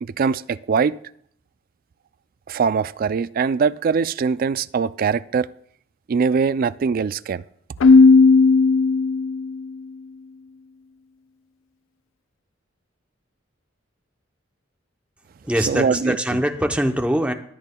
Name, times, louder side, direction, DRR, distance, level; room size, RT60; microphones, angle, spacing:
voice 1, 0.0-1.0 2.5-5.5 6.1-7.4 15.7-16.2, right 5 dB, 50° right, 16 dB, 0.3 m, -22 dB
Keyboard (musical), 7.8-9.6, left 4 dB, 80° left, 0.4 m, -14 dB
voice 2, 15.4-17.3, equal, 5° right, 5 dB, 0.7 m, -22 dB
20.0 x 8.7 x 2.3 m, 0.66 s
head